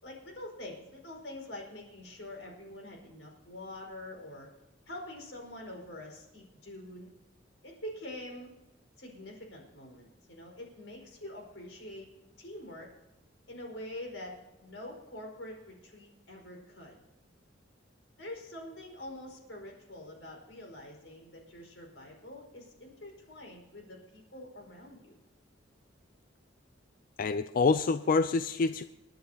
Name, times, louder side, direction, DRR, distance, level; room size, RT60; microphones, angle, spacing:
voice 1, 0.0-4.5 4.9-7.1 7.6-8.5 9.0-12.1 12.4-12.9 13.5-14.3 14.6-17.0 18.2-25.2, left 1 dB, 80° left, 1 dB, 4.9 m, -45 dB
voice 2, 27.2-28.8, left 4 dB, 50° left, 11 dB, 0.4 m, -26 dB
29.5 x 10.5 x 2.9 m, 1.0 s
head